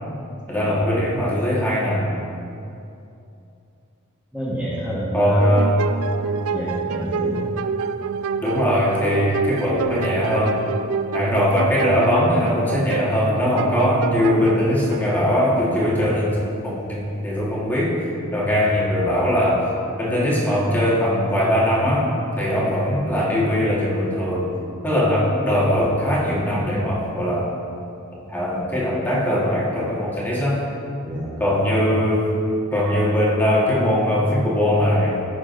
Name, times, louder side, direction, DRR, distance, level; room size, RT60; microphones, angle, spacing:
voice 1, 0.5-2.1 5.1-5.7 8.4-10.6 11.1-16.4 16.6-18.0 18.3-19.6 20.0-22.1 22.4-24.5 24.8-27.5 28.3-30.6 31.4-32.3 32.7-35.2, equal, 10° left, -6 dB, 1.4 m, -20 dB
voice 2, 4.3-5.4 6.5-7.4 15.9-16.2 22.6-22.7 31.0-31.4, equal, 5° right, -8 dB, 1.3 m, -29 dB
sound 1, 5.4-15.9, right 5 dB, 85° right, 0.3 m, -28 dB
14.5 x 6.1 x 2.5 m, 2.6 s
head